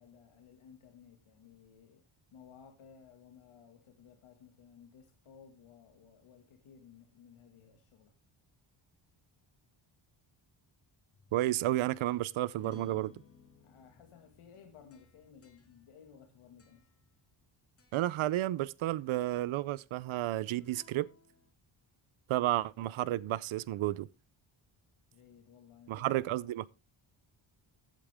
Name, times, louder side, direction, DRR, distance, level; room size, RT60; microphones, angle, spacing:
voice 1, 0.0-2.0 2.3-8.1 13.6-16.9 25.1-26.2, left 7 dB, 85° left, 2.2 m, -57 dB
sound 1, 11.1-17.5 17.8-18.2 20.5-21.5, left 6 dB, 30° left, 2.3 m, -61 dB
voice 2, 11.3-13.1 17.9-21.1 22.3-24.1 25.9-26.7, right 15 dB, 75° right, 0.6 m, -32 dB
15.0 x 8.6 x 3.5 m
wide cardioid pair, 140°, 49 cm